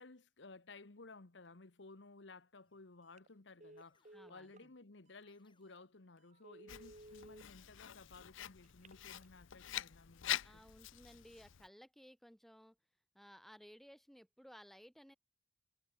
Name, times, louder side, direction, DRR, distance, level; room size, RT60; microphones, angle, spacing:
voice 1, 0.0-10.4, left 3 dB, 65° left, 1.3 m, -57 dB
sound 1, 2.6-3.2 3.8-4.6 5.3-6.1 6.8-7.6, left 4 dB, 25° left, 5.1 m, -80 dB
Telephone, 3.0-3.3 3.6-4.7 5.2-5.3 5.7-5.9 6.3-7.4 8.6-9.3, right 1 dB, 40° right, 1.8 m, -57 dB
voice 2, 4.1-4.7 10.4-12.8 13.1-15.2, equal, ahead, 2.8 m, -59 dB
Writing, 6.7-11.7, left 12 dB, 85° left, 0.6 m, -45 dB
head